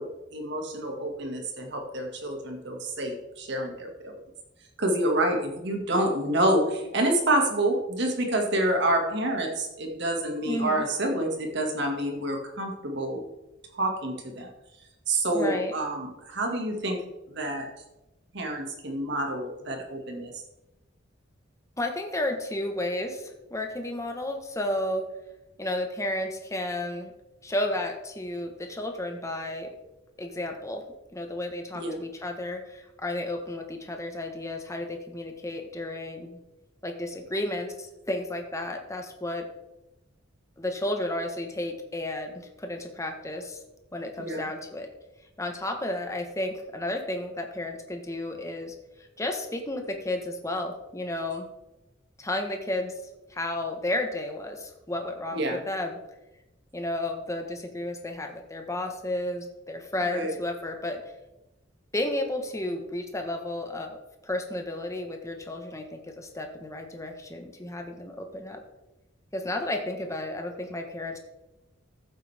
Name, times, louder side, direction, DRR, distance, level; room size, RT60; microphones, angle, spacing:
voice 1, 0.0-4.2 4.8-13.2 13.7-14.5 15.1-17.0 17.3-17.7 18.3-20.4 31.7-32.0 44.2-44.4 55.3-55.6 60.1-60.3, right 1 dB, 65° right, 2 dB, 2.1 m, -28 dB
voice 2, 10.4-10.8 15.3-15.7 21.8-25.1 25.6-27.1 27.4-29.7 30.2-30.8 31.1-36.4 36.8-39.5 40.6-43.6 43.9-44.9 45.4-48.7 49.2-51.5 52.2-52.9 53.3-55.9 56.7-61.1 61.9-64.0 64.2-68.6 69.3-71.2, left 1 dB, 15° left, 4 dB, 1.4 m, -32 dB
14.0 x 7.9 x 3.6 m, 0.98 s
head